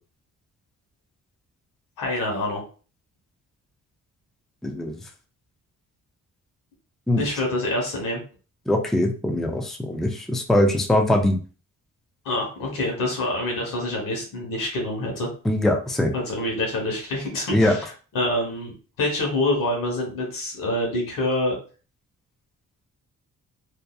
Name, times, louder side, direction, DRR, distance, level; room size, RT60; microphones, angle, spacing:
voice 1, 2.0-2.6 7.1-8.2 12.2-15.3 16.1-21.5, left 1 dB, 85° left, 0 dB, 1.1 m, -26 dB
voice 2, 4.6-5.0 7.1-7.2 8.7-11.4 15.5-16.1 17.5-17.8, left 1 dB, ahead, 2 dB, 0.4 m, -21 dB
2.7 x 2.2 x 2.3 m, 0.37 s
cardioid pair, 80°, 32 cm